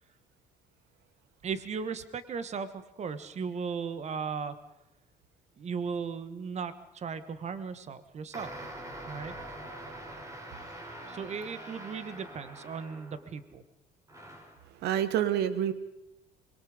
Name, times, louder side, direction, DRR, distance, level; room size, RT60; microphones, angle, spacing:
voice 1, 1.4-4.6 5.6-8.5 9.1-9.3 11.1-13.6, right 6 dB, 40° right, 13 dB, 1.6 m, -36 dB
sound 1, 8.3-13.4 14.1-14.6, right 1 dB, 20° right, 4.7 m, -44 dB
voice 2, 10.1-10.5 14.6-15.7, right 10 dB, 80° right, 14 dB, 1.2 m, -29 dB
24.5 x 22.5 x 5.2 m, 0.88 s
cardioid pair, 110°, 17 cm